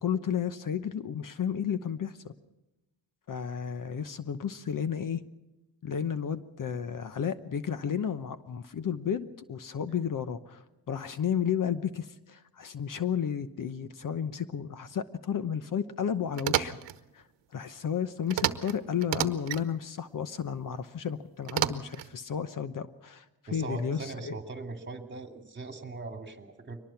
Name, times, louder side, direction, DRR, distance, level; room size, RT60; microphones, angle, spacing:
voice 1, 0.0-2.3 3.3-5.2 5.8-16.8 17.1-17.2 17.5-23.3 23.5-24.4, left 8 dB, 50° left, 12 dB, 1.0 m, -32 dB
sound 1, 16.4-17.0 18.3-18.7 19.0-19.6 21.5-22.1, right 12 dB, 85° right, 1.1 m, -30 dB
voice 2, 23.5-26.8, right 3 dB, 25° right, 5 dB, 2.6 m, -39 dB
23.0 x 19.5 x 5.9 m, 1.0 s
cardioid pair, 105°, 42 cm